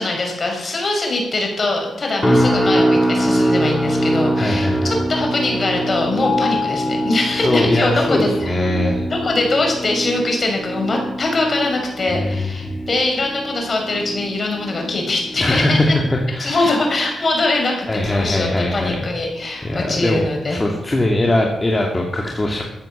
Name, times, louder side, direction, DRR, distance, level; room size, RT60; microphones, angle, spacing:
voice 1, 0.0-8.5 9.1-16.0 16.4-20.6, left 2 dB, 45° left, 1 dB, 6.0 m, -22 dB
sound 1, 2.2-17.4 17.8-18.2 18.7-18.9, right 1 dB, 5° left, 3.2 m, -23 dB
voice 2, 4.4-4.9 7.2-9.1 12.1-12.8 15.4-16.7 17.9-19.0 19.6-22.6, left 1 dB, 25° left, -1 dB, 2.4 m, -21 dB
Mallet percussion, 6.2-8.2, left 6 dB, 75° left, 1.6 m, -27 dB
15.0 x 9.0 x 7.3 m, 0.97 s
cardioid pair, 80°, 0 cm